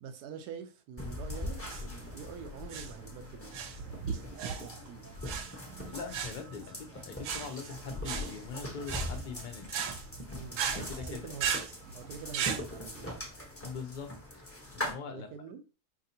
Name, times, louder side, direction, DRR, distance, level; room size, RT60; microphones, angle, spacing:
voice 1, 0.0-3.9 4.6-5.1 10.3-11.5 11.9-13.3 15.1-15.6, right 7 dB, 85° right, 1.2 m, -46 dB
sound 1, 1.0-14.9, left 1 dB, 10° left, 0.7 m, -42 dB
sound 2, 1.6-12.6, right 7 dB, 65° right, 0.8 m, -37 dB
voice 2, 5.8-9.9 10.7-11.3 13.6-14.4 14.7-15.3, left 5 dB, 55° left, 0.5 m, -42 dB
4.9 x 2.7 x 2.8 m
omnidirectional pair, 1.7 m